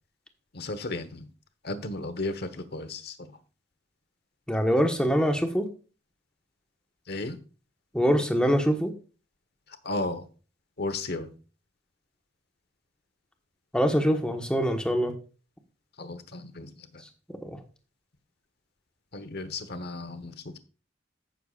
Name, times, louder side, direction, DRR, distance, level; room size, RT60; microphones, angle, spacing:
voice 1, 0.5-1.3 1.6-3.4 7.1-7.4 9.8-10.3 10.8-11.3 16.0-17.0 19.1-20.6, left 2 dB, 55° left, 1.1 m, -34 dB
voice 2, 4.5-5.7 7.9-8.9 13.7-15.1 17.4-17.6, equal, 5° left, 1.3 m, -24 dB
15.0 x 6.8 x 2.5 m
head